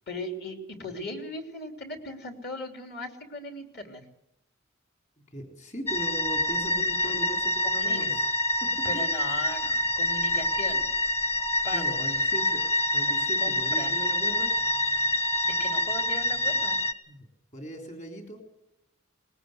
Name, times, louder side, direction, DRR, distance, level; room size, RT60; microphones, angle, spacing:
voice 1, 0.1-4.0 7.0-7.2 7.6-8.0 8.8-10.8 11.6-12.1 13.4-13.9 15.6-16.8, left 2 dB, 55° left, 4 dB, 3.1 m, -38 dB
voice 2, 5.3-8.2 11.7-12.6 12.9-14.5 17.1-17.3 17.5-18.4, right 1 dB, 35° left, 3 dB, 3.8 m, -39 dB
sound 1, 5.9-16.9, left 1 dB, 15° left, 0.9 m, -26 dB
20.5 x 18.0 x 8.0 m, 0.85 s
head